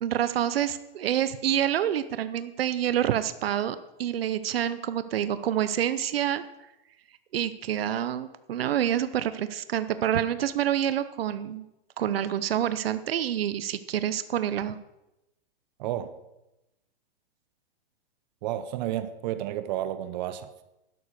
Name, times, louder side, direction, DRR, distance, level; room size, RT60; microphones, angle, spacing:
voice 1, 0.0-6.4 7.3-11.6 12.0-14.8, right 10 dB, 85° right, 13 dB, 0.7 m, -27 dB
voice 2, 15.8-16.1 18.4-20.6, right 12 dB, 50° right, 12 dB, 0.8 m, -31 dB
12.0 x 7.0 x 6.4 m, 0.93 s
hypercardioid pair, 135°, 29 cm